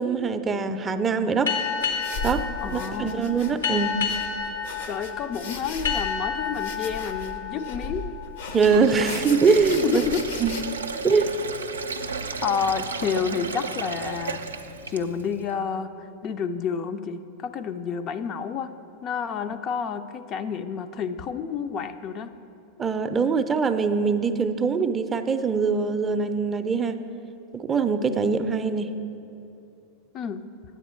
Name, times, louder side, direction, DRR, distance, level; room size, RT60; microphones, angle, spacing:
voice 1, 0.0-1.5 2.2-4.0 8.5-10.0 10.4-10.6 11.0-11.3 22.8-27.0 27.5-28.9, right 5 dB, 25° right, 9 dB, 0.4 m, -23 dB
sound 1, 1.5-8.7, left 6 dB, 85° left, 1.0 m, -30 dB
sound 2, 1.8-10.6, left 3 dB, 70° left, 0.8 m, -37 dB
voice 2, 2.6-3.3 4.9-8.2 9.8-10.2 12.4-14.4 14.9-15.9 16.2-18.7 19.0-22.3 30.1-30.4, left 6 dB, 40° left, 9 dB, 0.4 m, -29 dB
Sink (filling or washing), 8.5-15.3, right 4 dB, 90° right, 0.4 m, -32 dB
9.3 x 7.9 x 4.3 m, 2.8 s
hypercardioid pair, 95°, 0 cm